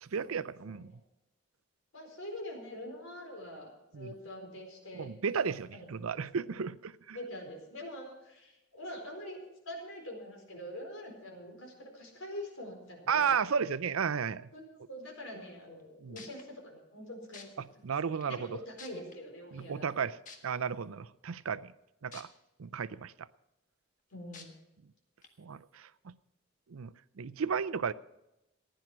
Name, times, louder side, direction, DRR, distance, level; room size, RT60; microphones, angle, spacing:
voice 1, 0.0-0.9 3.9-4.1 4.9-7.2 13.1-14.5 16.0-16.2 17.8-18.6 19.5-20.2 20.4-21.7 22.0-22.3 22.6-23.1 25.4-26.1 26.7-27.9, right 6 dB, 90° right, 17 dB, 0.5 m, -33 dB
voice 2, 1.9-5.1 5.7-5.9 6.1-6.2 6.5-6.6 7.1-9.4 9.6-13.4 14.5-17.8 18.3-19.9 24.1-24.5, left 1 dB, 80° left, 1 dB, 4.5 m, -45 dB
sound 1, 15.8-15.9 16.2-16.4 17.3-17.4 18.2-18.3 18.8-19.1 20.3-20.4 22.1-22.2 22.7-22.8 24.3-24.4 25.2-25.3, left 5 dB, 35° left, 1.5 m, -48 dB
15.0 x 10.5 x 6.1 m, 0.91 s
head